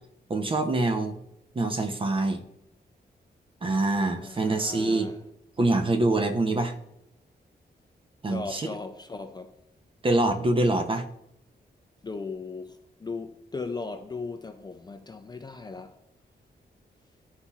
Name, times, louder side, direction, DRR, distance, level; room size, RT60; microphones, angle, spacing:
voice 1, 0.3-1.2 1.5-2.4 3.6-5.1 5.6-6.7 8.2-8.6 10.0-11.0, right 2 dB, 30° right, 0.7 m, -25 dB
voice 2, 4.2-5.2 8.3-9.5 12.0-16.0, left 4 dB, 25° left, 0.4 m, -37 dB
11.5 x 4.1 x 2.4 m
wide cardioid pair, 155°, 18 cm